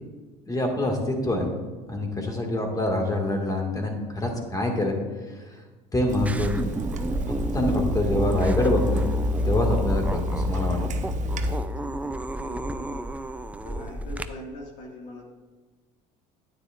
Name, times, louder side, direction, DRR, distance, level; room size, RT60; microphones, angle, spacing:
voice 1, 0.5-1.5 1.9-4.9 5.9-6.6 7.5-9.1 9.4-10.8, left 1 dB, 20° left, 1 dB, 2.0 m, -25 dB
Water tap faucet / Sink (filling or washing), 6.1-11.6, left 1 dB, 40° right, 0.8 m, -27 dB
sound 1, 6.3-14.3, right 1 dB, 5° right, 0.4 m, -33 dB
voice 2, 11.8-13.1 13.6-15.3, left 1 dB, 70° left, -1 dB, 2.0 m, -42 dB
9.4 x 9.4 x 2.5 m, 1.3 s
supercardioid pair, 90°, 20 cm